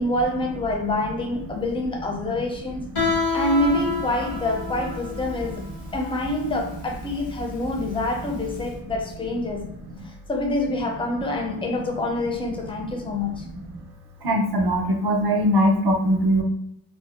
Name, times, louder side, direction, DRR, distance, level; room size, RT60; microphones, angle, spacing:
voice 1, 0.0-2.8 3.3-5.6 5.9-9.7 10.3-13.4, left 2 dB, 10° left, 1 dB, 0.3 m, -26 dB
Guitar, 2.9-8.6, left 3 dB, 85° left, 1.4 m, -29 dB
voice 2, 14.2-16.4, equal, 55° right, 2 dB, 0.5 m, -20 dB
2.5 x 2.1 x 2.3 m, 0.77 s
wide cardioid pair, 105°, 49 cm